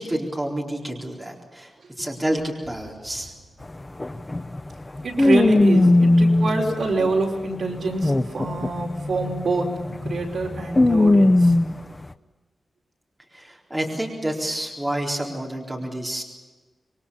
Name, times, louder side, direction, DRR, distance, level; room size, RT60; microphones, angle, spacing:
voice 1, 0.0-3.3 13.3-16.2, right 1 dB, 10° right, -1 dB, 4.1 m, -29 dB
sound 1, 3.6-3.7 4.0-7.2 7.8-11.8, left 2 dB, 15° left, 0.8 m, -19 dB
voice 2, 5.0-11.5, right 2 dB, 65° right, 0 dB, 4.9 m, -26 dB
26.5 x 23.0 x 7.2 m, 1.3 s
wide cardioid pair, 180°, 0 cm